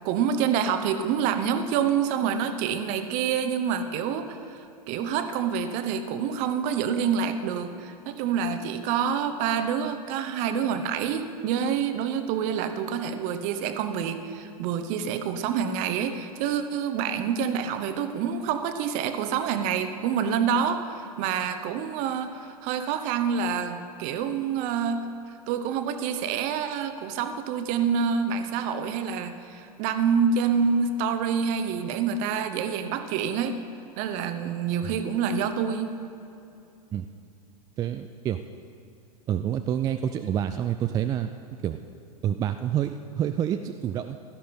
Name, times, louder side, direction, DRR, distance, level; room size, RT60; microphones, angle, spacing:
voice 1, 0.0-25.1 25.5-33.6 34.0-35.9, right 7 dB, 40° right, 9 dB, 1.0 m, -27 dB
voice 2, 37.8-38.4 39.3-41.3 41.6-41.8 42.2-44.2, right 10 dB, 20° right, 8 dB, 0.3 m, -28 dB
16.5 x 13.0 x 4.3 m, 2.7 s
figure-of-eight pair, 95°, 20 cm